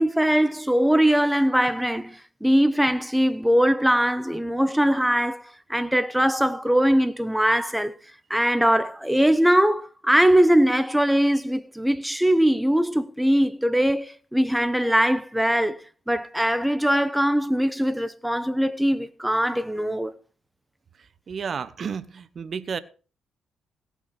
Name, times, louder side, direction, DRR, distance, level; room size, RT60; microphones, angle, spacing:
voice 1, 0.0-5.4 5.7-7.9 8.3-15.8 16.1-20.1, equal, 5° right, 1.1 m, -21 dB
voice 2, 21.3-22.8, right 6 dB, 45° right, 0.9 m, -31 dB
17.0 x 5.9 x 5.9 m
cardioid pair, 95°, 0 cm